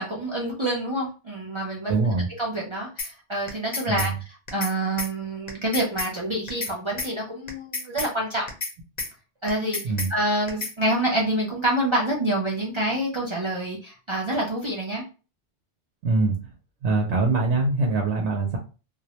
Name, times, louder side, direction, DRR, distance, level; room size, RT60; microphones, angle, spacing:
voice 1, 0.0-2.0 2.4-4.1 4.5-8.5 9.4-9.8 10.1-15.0, right 1 dB, 45° right, -3 dB, 0.3 m, -27 dB
voice 2, 1.9-2.3 3.9-4.1 9.8-10.1 16.0-16.4 16.8-18.6, right 3 dB, 70° right, 1 dB, 0.8 m, -23 dB
sound 1, 3.0-3.1 3.5-4.1 4.5-4.7 5.0-5.1 5.5-6.1 6.5-6.7 7.0-7.1 7.5-8.1 8.5-8.7 9.0-9.1 9.5-10.1 10.5-10.7, left 3 dB, 45° left, 0.6 m, -30 dB
2.4 x 2.0 x 2.8 m, 0.33 s
omnidirectional pair, 1.2 m